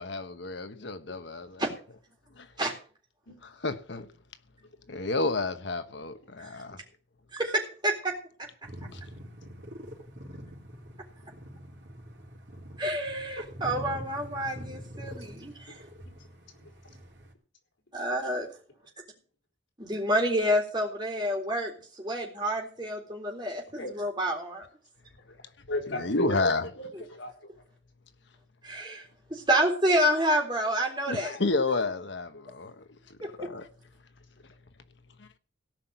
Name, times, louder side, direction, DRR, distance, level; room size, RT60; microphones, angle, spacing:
voice 1, 0.0-1.6 3.4-4.1 4.9-6.8 8.8-9.0 26.0-26.7 31.1-33.7, left 3 dB, 65° left, 1.1 m, -31 dB
voice 2, 7.3-8.1 12.8-15.7 17.9-18.5 19.8-24.7 28.6-29.0 29.3-31.4 33.2-33.5, equal, 25° right, 3.8 m, -28 dB
sound 1, 8.6-17.3, equal, 60° right, 4.1 m, -44 dB
voice 3, 16.6-16.9 23.7-24.1 25.3-27.5 32.3-32.5, left 1 dB, 80° left, 4.2 m, -36 dB
17.5 x 5.8 x 8.0 m
head